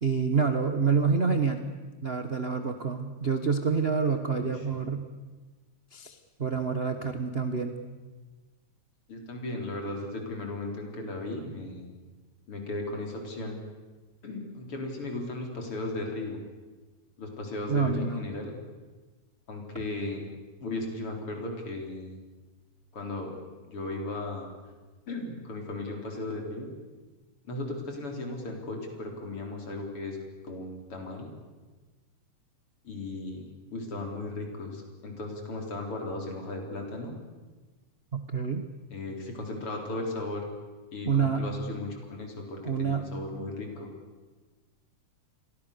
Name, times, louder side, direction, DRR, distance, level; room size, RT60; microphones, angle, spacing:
voice 1, 0.0-1.6 2.0-5.1 5.9-7.8 17.7-18.2 38.1-38.6 41.1-41.4 42.6-43.0, right 5 dB, 50° right, 7 dB, 0.7 m, -27 dB
voice 2, 4.2-4.8 9.1-11.9 12.5-13.6 14.2-16.4 17.2-18.5 19.5-20.2 20.6-22.2 22.9-23.3 23.7-24.5 25.1-26.7 27.4-30.2 30.4-31.3 32.8-37.1 38.9-40.5 40.9-43.9, left 2 dB, 50° left, 2 dB, 5.1 m, -36 dB
30.0 x 22.5 x 6.9 m, 1.3 s
omnidirectional pair, 3.3 m